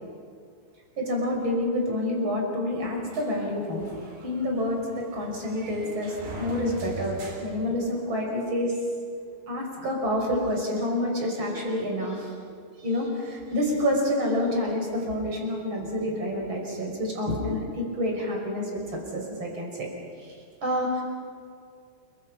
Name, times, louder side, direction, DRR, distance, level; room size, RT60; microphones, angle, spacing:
voice 1, 1.0-3.9 4.2-6.1 6.4-8.7 9.5-12.3 12.8-19.9 20.6-21.0, left 1 dB, 30° right, 0 dB, 5.9 m, -28 dB
sound 1, 3.1-8.4, right 2 dB, 70° right, 6.1 m, -42 dB
29.0 x 24.0 x 5.8 m, 2.3 s
omnidirectional pair, 4.9 m